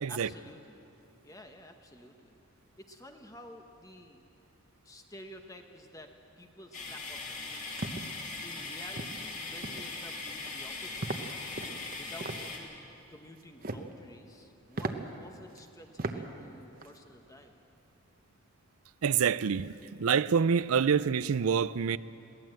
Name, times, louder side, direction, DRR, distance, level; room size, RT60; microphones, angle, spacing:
voice 1, 0.1-0.9 1.2-2.4 2.8-4.2 4.8-7.9 8.4-11.1 11.9-12.8 13.1-17.6, left 1 dB, 15° left, 1.0 m, -51 dB
sound 1, 6.7-12.6, left 3 dB, 35° left, 2.3 m, -40 dB
sound 2, 7.4-8.0 8.5-8.7 9.0-9.2 9.6-9.9 10.3-10.6 11.0-11.3 11.5-12.4 13.4-13.9 14.3-14.4 14.7-14.9 15.6-15.7 16.0-16.2 16.5-16.9, right 2 dB, 40° right, 1.0 m, -37 dB
voice 2, 19.0-22.0, right 6 dB, 75° right, 0.5 m, -27 dB
22.0 x 17.5 x 7.8 m
head